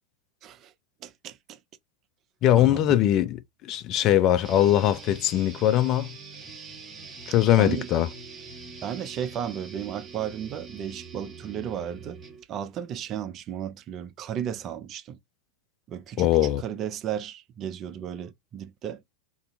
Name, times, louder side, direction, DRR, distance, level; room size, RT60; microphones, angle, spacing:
voice 1, 1.0-1.6 2.5-3.0 7.6-7.9 8.8-12.2 12.5-15.2 15.9-16.3 16.6-19.0, right 9 dB, 30° right, 0.4 m, -34 dB
voice 2, 2.4-6.1 7.3-8.1 16.2-16.6, left 12 dB, 35° left, 0.3 m, -21 dB
sound 1, 4.4-12.4, right 4 dB, 15° right, 0.8 m, -44 dB
2.5 x 2.2 x 2.5 m
figure-of-eight pair, 90°, 0 cm